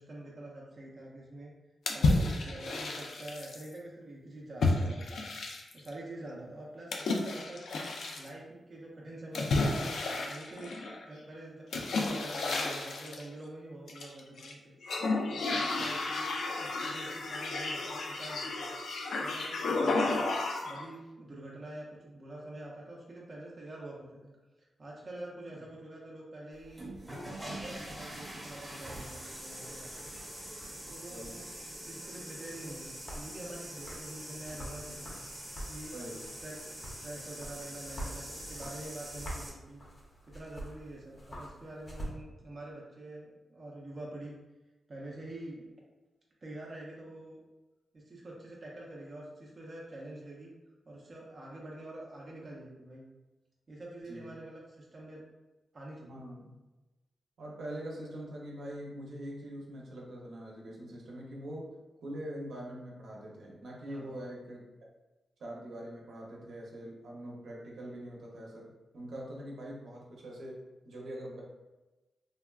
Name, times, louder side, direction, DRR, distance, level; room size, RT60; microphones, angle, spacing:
voice 1, 0.0-1.5 1.9-5.3 5.7-7.6 8.2-10.7 11.0-11.7 12.0-14.7 15.2-18.7 19.2-24.4 24.8-30.1 30.6-35.1 35.7-36.0 36.4-39.8 40.3-44.3 44.9-45.7 46.4-47.4 47.9-50.5 50.9-53.1 53.7-55.2 55.7-56.2 63.9-64.2, right 1 dB, 35° right, -4 dB, 0.4 m, -46 dB
sound 1, 1.9-3.7 4.6-5.9 6.9-8.3 9.3-11.0 11.7-13.2 13.9-14.5 14.8-20.8, left 2 dB, 75° left, 0.3 m, -32 dB
voice 2, 15.7-16.0 30.2-30.3 31.1-31.5 34.5-34.6 35.9-36.3 54.0-54.3 56.1-56.5 57.4-61.7 62.0-64.7 65.4-71.4, right 1 dB, 75° right, -3 dB, 0.7 m, -43 dB
sound 2, 26.6-39.5, right 1 dB, 5° right, 0.7 m, -44 dB
sound 3, 32.3-42.1, equal, 35° left, 0.6 m, -46 dB
3.3 x 2.2 x 2.3 m, 1.1 s
wide cardioid pair, 165°, 0 cm